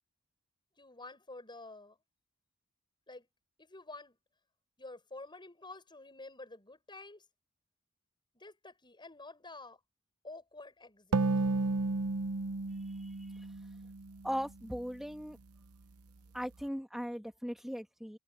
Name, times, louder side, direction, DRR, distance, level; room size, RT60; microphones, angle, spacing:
voice 1, 0.8-2.0 3.1-3.3 3.6-4.2 4.8-7.2 8.3-9.8 10.2-11.2, left 2 dB, 20° left, 6.9 m, -49 dB
sound 1, 11.1-14.6, right 3 dB, 80° right, 0.8 m, -33 dB
voice 2, 12.7-13.5 14.2-15.4 16.3-18.2, equal, ahead, 1.4 m, -39 dB
head